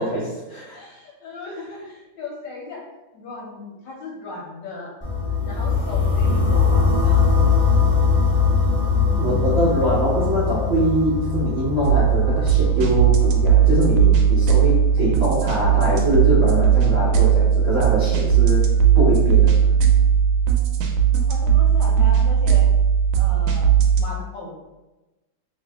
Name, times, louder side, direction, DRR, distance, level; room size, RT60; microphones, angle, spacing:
voice 1, 0.0-0.8 9.2-18.7 18.9-19.6, right 1 dB, 55° right, -9 dB, 0.6 m, -23 dB
voice 2, 0.7-2.9 3.1-5.0 5.5-7.4 8.9-9.6 21.3-22.7 23.2-23.7 24.0-24.6, left 3 dB, 70° left, -2 dB, 1.2 m, -36 dB
sound 1, 5.0-14.9, left 5 dB, 10° left, 0.5 m, -21 dB
sound 2, 11.8-24.0, right 8 dB, 85° right, 1.4 m, -17 dB
3.0 x 2.7 x 3.4 m, 1.1 s
omnidirectional pair, 2.3 m